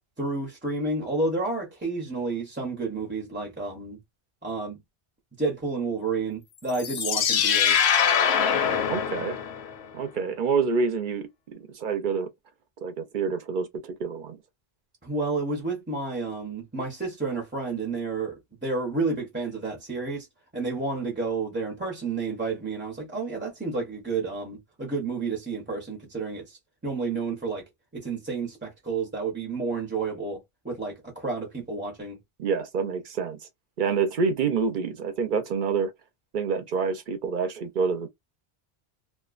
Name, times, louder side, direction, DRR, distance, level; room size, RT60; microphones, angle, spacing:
voice 1, 0.2-4.0 4.4-4.8 5.4-7.8 15.0-20.3 20.5-26.6 26.8-27.6 27.9-32.2, right 3 dB, 15° right, 0.6 m, -30 dB
sound 1, 6.7-9.8, left 8 dB, 90° left, 0.9 m, -23 dB
voice 2, 8.9-9.4 9.9-12.3 12.8-14.4 32.4-33.4 33.8-35.9 36.3-38.1, right 5 dB, 55° right, 0.7 m, -27 dB
2.4 x 2.2 x 2.4 m
omnidirectional pair, 1.1 m